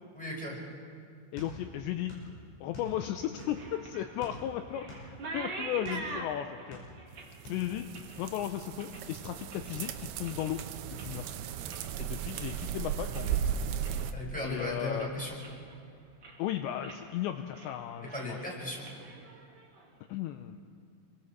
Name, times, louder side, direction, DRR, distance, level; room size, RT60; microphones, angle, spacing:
voice 1, 0.1-0.6 14.1-15.4 18.1-18.8, left 1 dB, ahead, -3 dB, 4.9 m, -36 dB
voice 2, 1.3-2.1 2.6-4.9 5.3-6.8 7.5-7.9 8.2-10.6 10.9-11.3 12.0-13.4 14.4-15.1 16.4-18.4 20.1-20.6, left 12 dB, 85° left, 7 dB, 2.6 m, -35 dB
sound 1, 1.4-2.3 2.6-3.7 4.2-6.1 6.5-7.2 7.5-7.6, left 1 dB, 70° left, 7.6 m, -46 dB
sound 2, 3.1-9.8 10.1-10.6 10.9-13.4 13.7-14.1 14.5-14.6 15.0-15.8 16.1-16.5 16.8-17.0 17.4-17.7 18.0-19.8, right 3 dB, 40° right, 2.2 m, -45 dB
sound 3, 7.2-14.1, right 9 dB, 85° right, 2.3 m, -36 dB
29.5 x 23.0 x 4.6 m, 2.3 s
omnidirectional pair, 5.7 m